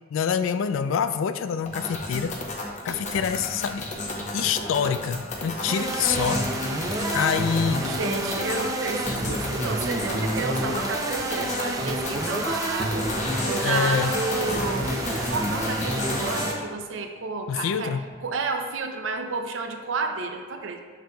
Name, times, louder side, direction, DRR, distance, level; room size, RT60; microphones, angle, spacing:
voice 1, 0.1-2.4 2.8-3.9 4.3-6.5 7.1-7.9 13.6-14.1 17.5-18.0, left 7 dB, 80° left, 11 dB, 0.3 m, -26 dB
sound 1, 1.6-16.5, left 2 dB, 35° left, 0.8 m, -33 dB
sound 2, 5.7-16.5, right 1 dB, 15° right, 0.4 m, -29 dB
voice 2, 7.8-14.9 15.3-20.8, right 3 dB, 75° right, 5 dB, 0.5 m, -31 dB
6.6 x 6.2 x 2.3 m, 1.5 s
head